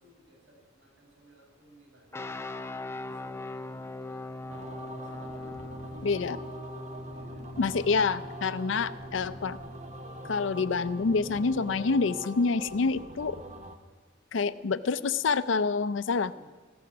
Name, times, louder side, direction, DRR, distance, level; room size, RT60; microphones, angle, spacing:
voice 1, 0.0-2.4 2.9-6.3 6.7-7.7 16.3-16.5, right 1 dB, 90° right, -1 dB, 6.1 m, -60 dB
sound 1, 2.1-12.3, left 2 dB, 15° left, 0.4 m, -41 dB
sound 2, 4.5-13.8, right 1 dB, 35° right, 0.9 m, -44 dB
voice 2, 6.0-6.4 7.6-9.6 10.3-13.4 14.3-16.3, left 4 dB, 70° left, 14 dB, 0.5 m, -27 dB
15.5 x 13.5 x 5.9 m, 1.4 s
head